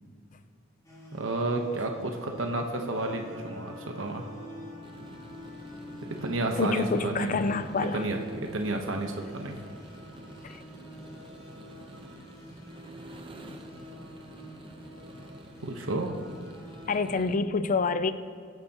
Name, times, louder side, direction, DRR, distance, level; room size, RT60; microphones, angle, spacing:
sound 1, 0.8-17.0, equal, 20° left, 3.6 m, -49 dB
voice 1, 1.1-4.2 6.2-7.4 7.9-8.2 8.5-9.5 15.6-16.2, right 2 dB, 85° right, 3 dB, 1.1 m, -31 dB
Wind instrument woodwind instrument, 2.8-7.6, left 3 dB, 65° left, 2.8 m, -48 dB
sound 2, 4.8-17.4, right 1 dB, 25° right, 0.9 m, -49 dB
voice 2, 6.6-8.1 10.4-10.6 16.9-18.1, left 4 dB, 40° left, 12 dB, 0.5 m, -27 dB
22.0 x 9.1 x 3.0 m, 2.3 s
head